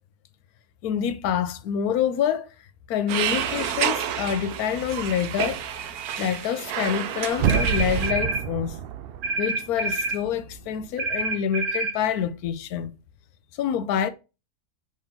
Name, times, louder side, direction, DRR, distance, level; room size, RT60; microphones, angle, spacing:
voice 1, 0.8-2.5 2.9-5.6 6.2-8.8 9.4-12.9 13.6-14.1, left 9 dB, 80° left, 1.2 m, -26 dB
sound 1, 3.1-8.1, right 9 dB, 85° right, 1.2 m, -29 dB
sound 2, 7.3-10.3 10.6-10.7, right 9 dB, 70° right, 0.5 m, -28 dB
sound 3, 7.5-8.5 9.2-10.2 11.0-12.0, right 2 dB, 50° right, 1.0 m, -27 dB
6.1 x 3.6 x 5.7 m
omnidirectional pair, 1.6 m